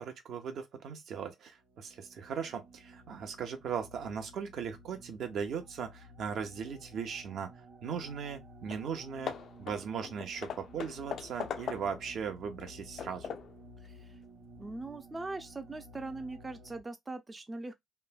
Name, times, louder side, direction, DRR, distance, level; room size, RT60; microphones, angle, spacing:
voice 1, 0.0-7.5 7.8-9.3 9.6-13.3, right 7 dB, 70° right, 0.8 m, -38 dB
sound 1, 1.6-16.8, equal, 45° right, 1.0 m, -54 dB
Hammer / Wood, 8.3-8.4 8.7-8.9 9.3-12.1 12.6-13.6, left 7 dB, 65° left, 0.4 m, -41 dB
voice 2, 13.8-14.2 14.6-17.7, right 2 dB, 20° right, 0.4 m, -41 dB
3.1 x 2.1 x 2.2 m
cardioid pair, 90°, 0 cm